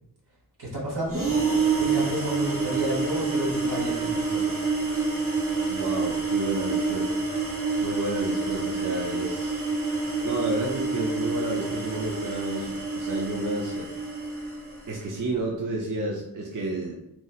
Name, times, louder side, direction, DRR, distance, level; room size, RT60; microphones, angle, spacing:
voice 1, 0.6-1.4 1.8-4.6, right 1 dB, 80° right, -4 dB, 1.2 m, -31 dB
sound 1, 1.1-15.0, right 4 dB, 35° right, 0.9 m, -28 dB
voice 2, 5.6-7.2 7.8-9.6 10.2-13.9 14.9-17.0, right 2 dB, 55° right, -1 dB, 0.5 m, -31 dB
2.9 x 2.7 x 2.4 m, 0.87 s
wide cardioid pair, 65°, 38 cm